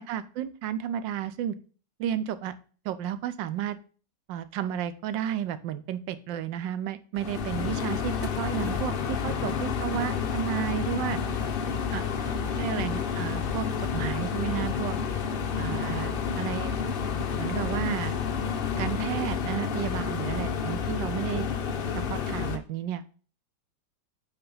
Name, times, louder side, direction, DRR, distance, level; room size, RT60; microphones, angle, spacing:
voice 1, 0.0-1.6 2.0-2.5 2.8-3.8 4.3-11.2 11.9-12.0 12.6-13.7 13.9-15.0 15.6-16.7 17.4-18.1 18.8-21.5 22.1-23.0, right 10 dB, 90° right, 13 dB, 1.4 m, -32 dB
sound 1, 7.2-22.6, left 6 dB, 75° left, 0.5 m, -30 dB
7.8 x 4.2 x 5.4 m, 0.41 s
omnidirectional pair, 1.9 m